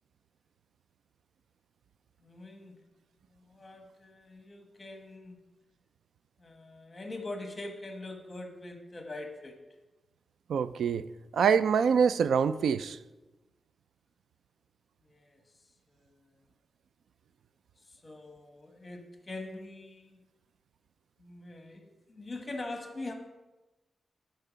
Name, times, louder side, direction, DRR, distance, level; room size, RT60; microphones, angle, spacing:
voice 1, 2.2-2.8 3.3-5.4 6.4-9.6 15.0-15.4 15.9-16.4 17.8-20.2 21.2-23.1, left 2 dB, 25° left, 1.1 m, -43 dB
voice 2, 10.5-11.1 11.3-13.0, right 6 dB, 85° right, 0.3 m, -25 dB
12.5 x 4.6 x 5.0 m
wide cardioid pair, 155°, 0 cm